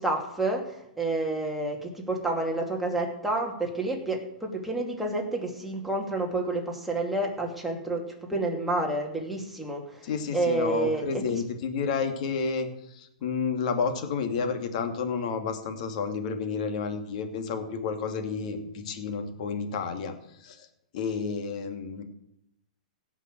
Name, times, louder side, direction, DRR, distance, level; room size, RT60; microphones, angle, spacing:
voice 1, 0.0-11.4, right 2 dB, ahead, -1 dB, 2.6 m, -29 dB
voice 2, 10.0-20.1 20.4-20.7 20.9-22.0, left 5 dB, 55° left, 6 dB, 2.5 m, -30 dB
17.0 x 5.9 x 7.9 m, 0.80 s
hypercardioid pair, 140°, 5 cm